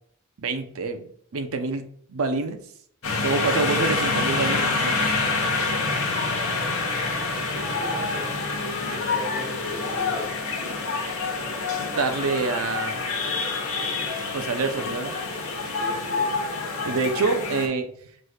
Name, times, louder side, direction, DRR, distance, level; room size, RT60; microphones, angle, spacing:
voice 1, 0.4-2.6 3.2-5.1 11.8-13.0 14.3-15.2 16.8-17.9, right 4 dB, 65° right, 8 dB, 0.6 m, -27 dB
sound 1, 3.0-17.7, left 3 dB, 65° left, 1.1 m, -27 dB
voice 2, 3.2-3.7 7.3-10.3 15.8-16.3, right 1 dB, ahead, -5 dB, 1.4 m, -39 dB
5.9 x 3.3 x 2.3 m, 0.62 s
head